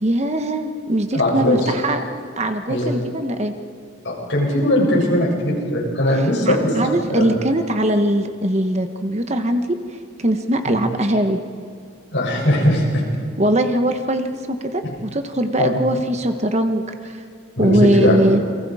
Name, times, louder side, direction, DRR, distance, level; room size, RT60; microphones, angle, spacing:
voice 1, 0.0-2.0 2.4-3.5 6.5-9.6 10.2-11.4 13.4-17.1 17.6-18.4, right 1 dB, 35° right, 6 dB, 1.1 m, -21 dB
voice 2, 1.1-1.7 2.7-3.0 4.0-7.3 10.6-10.8 12.1-13.0 14.8-14.9 15.6-15.8 17.6-18.1, left 1 dB, 60° left, -3 dB, 7.3 m, -19 dB
29.0 x 22.5 x 4.9 m, 2.2 s
head